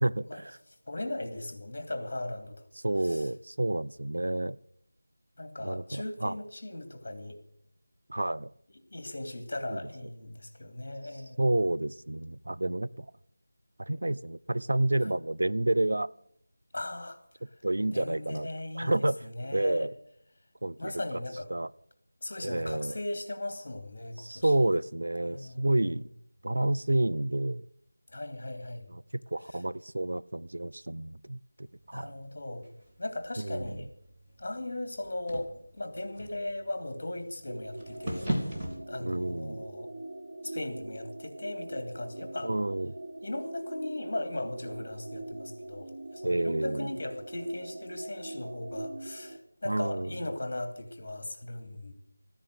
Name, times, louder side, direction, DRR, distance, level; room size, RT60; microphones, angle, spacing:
voice 1, 0.0-0.6 2.8-4.6 5.6-6.4 8.1-8.5 9.7-9.8 11.4-13.1 13.8-16.1 17.6-18.5 18.7-19.2 19.5-19.9 20.6-20.9 21.5-21.7 22.4-23.0 24.2-26.0 26.4-27.6 28.9-32.1 33.4-33.8 39.0-39.7 42.4-42.9 46.2-46.9 49.7-50.1, right 1 dB, 70° right, 16 dB, 0.5 m, -29 dB
voice 2, 0.9-2.6 3.1-3.3 5.4-7.4 8.9-11.4 15.0-15.1 16.7-17.2 17.9-19.9 20.8-21.5 22.2-24.5 25.3-26.0 28.1-28.9 31.9-32.6 33.0-33.9 34.4-38.4 38.9-39.9 40.4-42.5 43.2-51.9, left 1 dB, 40° left, 8 dB, 2.8 m, -38 dB
sound 1, 31.7-38.8, equal, 10° right, 2.4 m, -39 dB
sound 2, 37.5-49.4, right 2 dB, 25° right, 1.5 m, -43 dB
14.5 x 10.5 x 8.1 m, 0.70 s
figure-of-eight pair, 175°, 0 cm